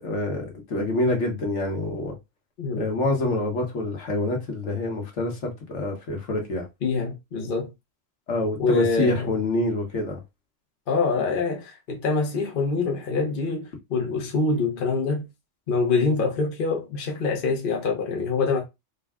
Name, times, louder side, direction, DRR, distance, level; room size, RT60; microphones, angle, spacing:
voice 1, 0.0-2.1 2.7-6.6 8.3-10.2, left 2 dB, 70° left, 1.4 m, -26 dB
voice 2, 6.8-7.7 8.6-9.3 10.9-15.2 15.7-18.6, left 4 dB, 50° left, 0.9 m, -25 dB
3.9 x 2.3 x 3.5 m
omnidirectional pair, 1.3 m